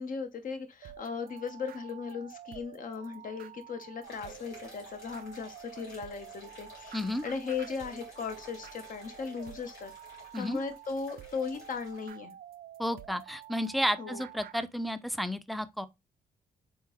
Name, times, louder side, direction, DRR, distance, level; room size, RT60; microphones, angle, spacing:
voice 1, 0.0-9.9 10.4-12.4 14.0-14.2, left 5 dB, 55° left, 0.9 m, -37 dB
sound 1, 0.8-14.7, right 11 dB, 65° right, 0.4 m, -49 dB
sound 2, 4.0-12.1, left 2 dB, 85° left, 1.7 m, -53 dB
voice 2, 6.9-7.2 10.3-10.6 12.8-15.9, equal, ahead, 0.5 m, -32 dB
3.7 x 3.6 x 3.0 m
supercardioid pair, 55°, 16 cm